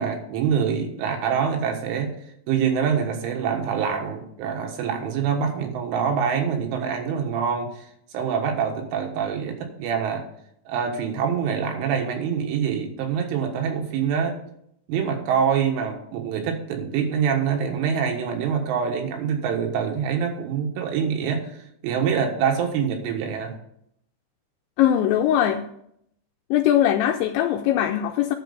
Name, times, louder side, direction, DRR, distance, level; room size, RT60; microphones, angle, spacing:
voice 1, 0.0-2.2 2.5-7.9 8.1-10.3 10.7-14.4 14.9-21.6 21.8-23.5, right 7 dB, 80° right, 3 dB, 3.8 m, -25 dB
voice 2, 24.8-25.6 26.5-28.4, left 11 dB, 85° left, 5 dB, 2.6 m, -20 dB
10.5 x 5.9 x 7.0 m, 0.72 s
omnidirectional pair, 5.7 m